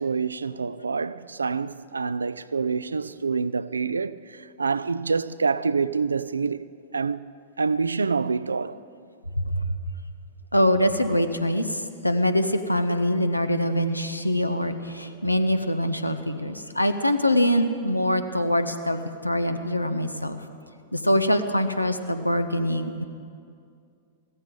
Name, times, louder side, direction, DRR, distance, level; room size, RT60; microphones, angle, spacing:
voice 1, 0.0-7.3 7.6-8.8, right 5 dB, 75° right, 0.4 m, -27 dB
voice 2, 9.4-9.8 10.5-20.4 20.9-23.0, equal, 90° left, 0.8 m, -24 dB
16.0 x 13.5 x 5.2 m
figure-of-eight pair, 100°, 0 cm